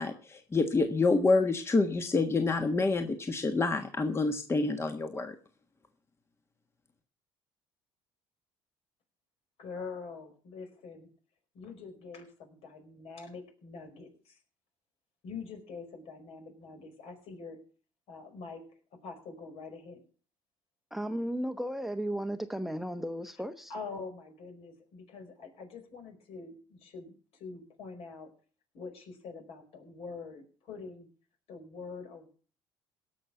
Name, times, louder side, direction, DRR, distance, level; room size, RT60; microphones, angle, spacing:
voice 1, 0.0-5.3, left 3 dB, 25° left, 6 dB, 1.4 m, -27 dB
voice 2, 9.6-11.1 11.5-14.4 15.2-17.6 18.1-20.0 23.7-28.3 28.7-31.1 31.5-32.3, left 4 dB, 65° left, 4 dB, 4.9 m, -45 dB
voice 3, 20.9-23.7, equal, ahead, 9 dB, 1.0 m, -34 dB
17.5 x 6.3 x 7.0 m, 0.41 s
supercardioid pair, 85°, 11 cm